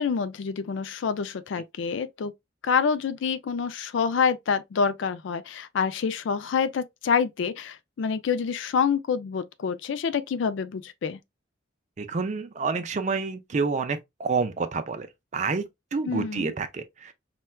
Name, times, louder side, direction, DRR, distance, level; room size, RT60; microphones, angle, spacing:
voice 1, 0.0-2.3 2.6-11.2 16.0-16.5, left 6 dB, 75° left, 0.4 m, -27 dB
voice 2, 12.0-15.1 15.3-15.6 15.9-17.1, right 4 dB, 40° right, 0.4 m, -28 dB
4.3 x 2.2 x 2.2 m
head